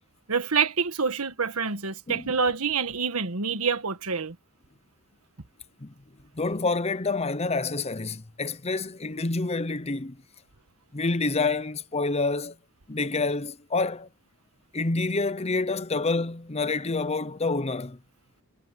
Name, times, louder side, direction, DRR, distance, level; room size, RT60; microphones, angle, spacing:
voice 1, 0.3-4.4, right 5 dB, 75° right, 1.5 m, -27 dB
voice 2, 6.4-10.2 10.9-12.6 12.9-14.1 14.7-18.0, left 3 dB, 30° left, 0.8 m, -28 dB
head